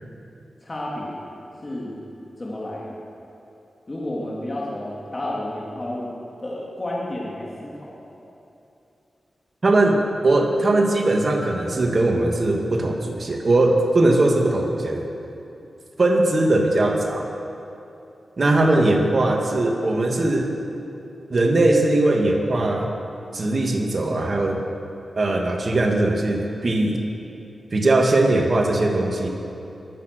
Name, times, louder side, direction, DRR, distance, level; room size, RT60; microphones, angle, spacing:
voice 1, 0.6-1.2 1.6-2.0 2.4-3.0 3.9-6.1 6.4-7.9, left 1 dB, 35° left, -5 dB, 3.3 m, -31 dB
voice 2, 9.6-15.1 16.0-17.3 18.4-20.5 21.3-22.9 23.3-24.7 25.2-27.0 27.7-29.3, right 2 dB, 55° right, 2 dB, 2.3 m, -20 dB
22.5 x 9.0 x 6.5 m, 2.8 s
cardioid pair, 45°, 0 cm